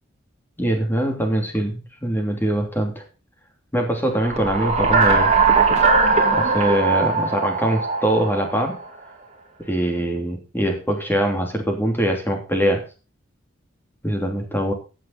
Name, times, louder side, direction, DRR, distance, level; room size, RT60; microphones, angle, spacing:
voice 1, 0.6-3.0 3.7-5.3 6.3-8.8 9.6-12.8 14.0-14.7, right 1 dB, 10° left, 3 dB, 3.0 m, -23 dB
sound 1, 4.1-8.8, right 4 dB, 35° right, 2.6 m, -19 dB
15.5 x 7.7 x 4.2 m, 0.33 s
head